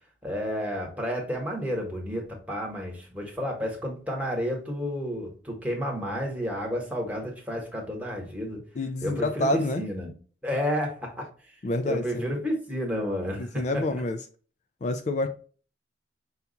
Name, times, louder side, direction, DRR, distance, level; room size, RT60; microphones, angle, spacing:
voice 1, 0.2-8.6 9.0-10.1 10.4-11.2 11.8-13.8, equal, 10° right, 1.2 m, -31 dB
voice 2, 8.8-9.8 11.6-12.3 13.4-14.2 14.8-15.3, left 2 dB, 40° left, 0.3 m, -28 dB
5.7 x 2.4 x 4.0 m
head